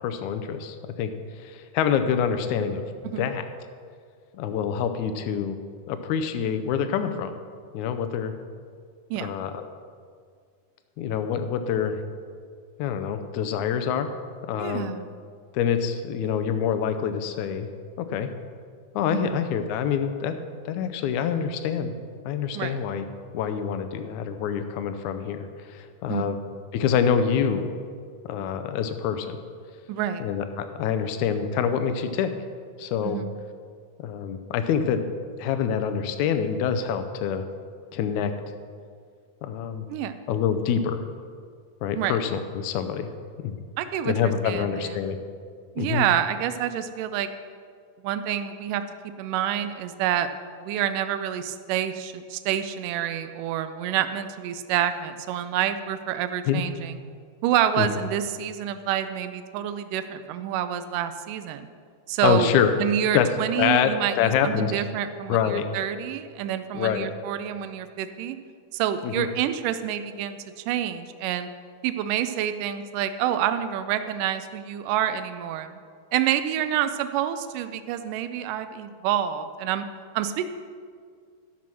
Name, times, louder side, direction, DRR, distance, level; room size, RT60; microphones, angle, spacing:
voice 1, 0.0-1.1 1.4-3.4 4.3-5.6 5.9-7.3 7.7-8.3 9.2-9.6 11.0-12.0 12.8-14.1 14.5-14.9 15.5-17.7 18.0-18.3 19.0-20.3 20.7-21.9 22.2-23.1 23.3-26.4 26.7-27.8 28.3-29.4 30.2-32.3 32.8-33.2 34.0-35.0 35.4-37.5 37.9-38.3 39.4-39.9 40.3-41.0 41.8-43.1 43.4-43.6 44.1-45.2 45.8-46.1 56.5-56.6 57.8-57.9 62.2-62.7 63.1-63.3 63.6-64.7 65.3-65.7 66.7-67.1 69.0-69.3, left 8 dB, 75° left, 9 dB, 1.9 m, -26 dB
voice 2, 14.6-15.1 19.1-19.4 22.5-22.7 26.1-26.3 29.9-30.2 33.0-33.3 39.9-40.2 41.9-42.2 43.8-44.1 44.4-45.1 45.8-47.3 48.0-48.8 49.2-50.3 50.6-57.0 57.4-61.7 62.1-62.5 62.8-68.4 68.7-71.5 71.8-75.8 76.1-79.9 80.1-80.5, right 10 dB, 85° right, 10 dB, 2.2 m, -28 dB
13.0 x 5.9 x 6.2 m, 2.1 s
omnidirectional pair, 3.7 m